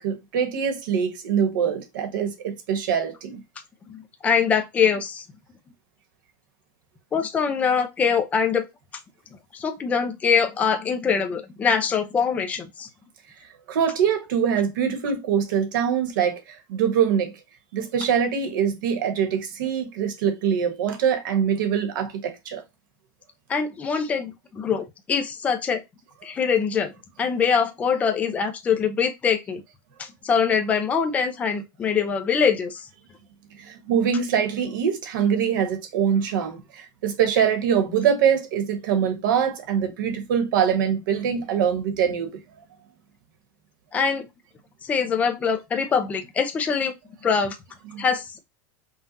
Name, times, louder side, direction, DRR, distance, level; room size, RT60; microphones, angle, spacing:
voice 1, 0.0-3.4 13.7-17.3 17.7-22.6 33.5-42.4 47.8-48.0, right 8 dB, 75° right, 1.4 m, -23 dB
voice 2, 3.9-5.2 7.1-8.7 9.5-12.9 23.5-25.8 26.2-26.9 27.2-29.6 30.0-32.8 43.9-44.2 44.8-46.9 47.2-47.6 48.0-48.4, left 6 dB, 15° left, 0.5 m, -23 dB
5.5 x 2.4 x 2.7 m
supercardioid pair, 175°, 11 cm